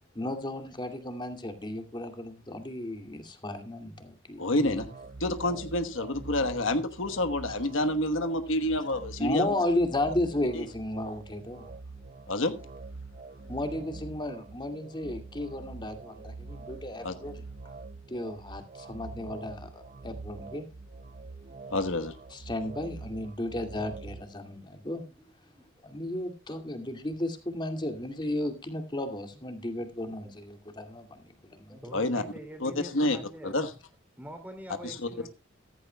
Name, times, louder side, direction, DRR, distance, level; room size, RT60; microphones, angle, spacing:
voice 1, 0.1-4.8 9.2-11.7 13.5-17.5 18.1-20.6 22.3-25.0 25.8-31.8, left 1 dB, 25° left, 2.2 m, -34 dB
voice 2, 4.4-4.9 5.2-9.5 10.5-10.6 12.3-12.5 17.0-17.1 21.7-22.1 31.9-32.2 32.6-33.2 33.4-33.7 34.8-35.3, left 1 dB, 80° left, 1.3 m, -28 dB
sound 1, 4.6-24.3, right 3 dB, 40° right, 0.5 m, -45 dB
voice 3, 31.7-33.7 34.2-35.3, equal, 10° right, 2.9 m, -45 dB
14.5 x 14.5 x 2.3 m
head